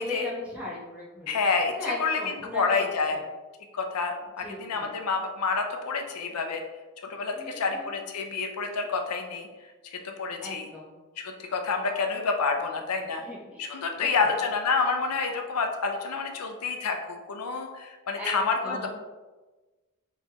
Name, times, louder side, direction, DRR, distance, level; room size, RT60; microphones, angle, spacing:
voice 1, 0.0-1.4 1.6-3.2 4.4-5.0 7.4-7.9 10.4-11.0 13.2-14.3 18.2-18.4 18.6-18.9, left 2 dB, 5° right, -5 dB, 1.1 m, -38 dB
voice 2, 1.3-3.2 3.7-6.6 7.0-9.5 9.8-10.7 11.2-13.2 13.6-18.9, left 4 dB, 85° left, 4 dB, 0.6 m, -28 dB
4.3 x 3.1 x 2.9 m, 1.2 s
head